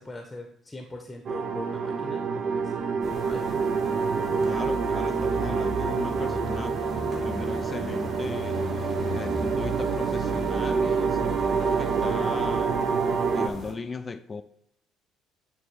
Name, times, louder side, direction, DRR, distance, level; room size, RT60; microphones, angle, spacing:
voice 1, 0.0-3.4 4.1-4.3, left 1 dB, 15° left, 0.8 m, -42 dB
sound 1, 1.3-13.5, right 5 dB, 55° right, 0.5 m, -27 dB
sound 2, 3.0-13.7, equal, 35° right, 2.2 m, -36 dB
voice 2, 4.4-6.8 7.2-8.6 9.1-12.8 13.3-14.4, left 4 dB, 30° left, 0.4 m, -37 dB
9.1 x 3.4 x 3.4 m
hypercardioid pair, 55°, 0 cm